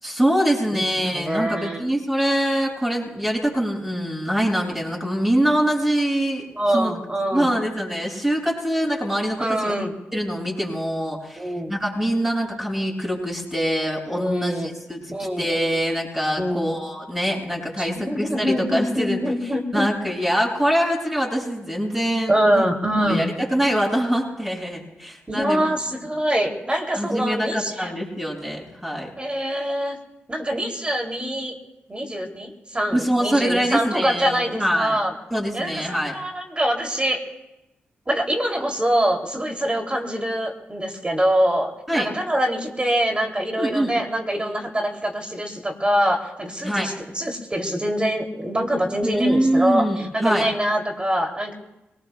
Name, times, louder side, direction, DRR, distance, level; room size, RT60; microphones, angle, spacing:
voice 1, 0.0-6.5 6.7-6.9 7.3-9.7 10.1-15.0 15.4-19.2 19.7-22.6 23.0-25.6 27.0-29.1 32.9-35.0 35.3-36.2 41.9-42.1 43.6-43.9 46.6-46.9 49.0-50.5, equal, 5° right, -2 dB, 7.3 m, -24 dB
voice 2, 1.1-1.8 6.6-7.5 9.4-9.9 11.4-11.7 14.2-14.7 15.1-15.5 16.4-16.8 17.8-19.9 22.3-23.3 25.3-27.9 29.2-30.0 30.3-31.5 31.9-35.1 35.5-37.2 38.1-51.5, equal, 25° right, 2 dB, 2.9 m, -24 dB
26.5 x 19.5 x 2.3 m, 0.94 s
supercardioid pair, 45°, 4 cm